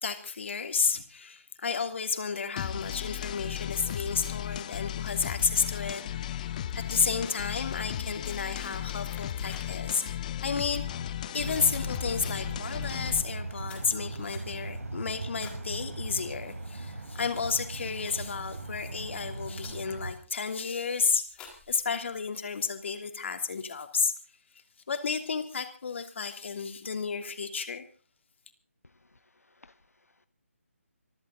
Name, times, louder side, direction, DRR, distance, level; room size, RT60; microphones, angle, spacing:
voice 1, 0.0-10.0 10.4-10.9 11.3-21.2 21.7-24.1 24.9-27.8, left 5 dB, 55° left, 7 dB, 3.0 m, -32 dB
sound 1, 2.6-13.2, left 10 dB, 30° left, 1.0 m, -35 dB
sound 2, 8.2-9.7 10.0-10.4 10.8-11.1 11.3-12.5 13.1-15.7 16.1-16.4 16.9-18.5 19.2-19.3 19.6-20.0 20.5-20.9 21.3-22.3, left 6 dB, 10° left, 4.1 m, -51 dB
sound 3, 11.3-20.1, right 2 dB, 80° right, 3.6 m, -39 dB
voice 2, 28.8-30.3, left 2 dB, 90° left, 12 dB, 0.9 m, -61 dB
27.0 x 12.0 x 3.9 m, 0.38 s
figure-of-eight pair, 150°, 8 cm